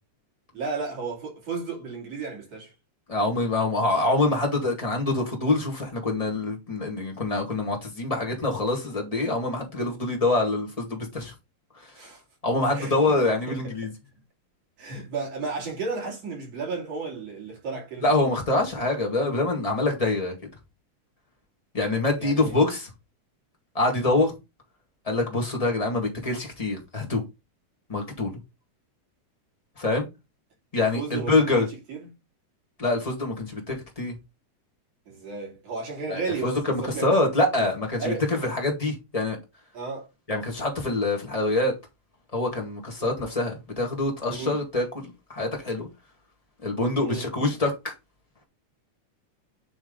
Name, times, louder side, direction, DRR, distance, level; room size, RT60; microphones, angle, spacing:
voice 1, 0.5-2.7 12.0-12.2 12.7-13.2 13.5-13.6 14.8-18.1 22.2-22.6 30.8-32.1 35.1-36.6 36.9-37.1 38.0-38.5 39.7-40.1 43.0-43.1 44.3-44.6 47.0-47.3, right 4 dB, 50° right, 3.8 m, -33 dB
voice 2, 3.1-11.3 12.4-13.9 18.0-20.3 21.7-22.9 23.7-24.3 25.0-27.2 27.9-28.3 29.8-30.1 30.7-31.7 32.8-34.1 36.1-39.4 40.3-41.7 42.3-44.9 45.3-45.9 46.6-47.9, left 2 dB, 25° left, 0.8 m, -25 dB
8.8 x 3.4 x 3.7 m
omnidirectional pair, 3.7 m